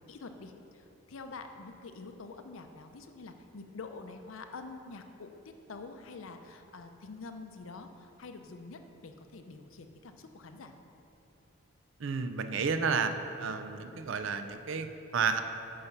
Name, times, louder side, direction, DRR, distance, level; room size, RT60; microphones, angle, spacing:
voice 1, 0.0-5.4 5.7-10.7, left 3 dB, 75° left, 7 dB, 0.6 m, -46 dB
voice 2, 12.0-13.1 13.4-15.4, right 5 dB, 65° right, 9 dB, 0.5 m, -31 dB
8.6 x 5.1 x 5.7 m, 2.9 s
head